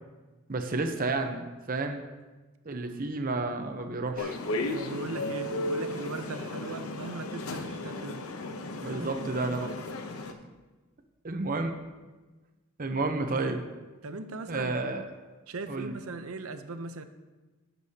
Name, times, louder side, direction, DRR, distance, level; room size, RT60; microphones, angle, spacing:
voice 1, 0.5-2.0 2.6-4.4 8.8-9.7 11.2-11.8 12.8-13.6 14.5-15.0 15.7-16.0, right 3 dB, 40° right, 5 dB, 0.8 m, -31 dB
sound 1, 4.2-10.3, left 2 dB, 90° left, 0.8 m, -35 dB
voice 2, 4.7-8.3 14.0-14.9 15.5-17.0, right 3 dB, 80° right, 9 dB, 0.7 m, -38 dB
18.0 x 7.0 x 2.8 m, 1.2 s
head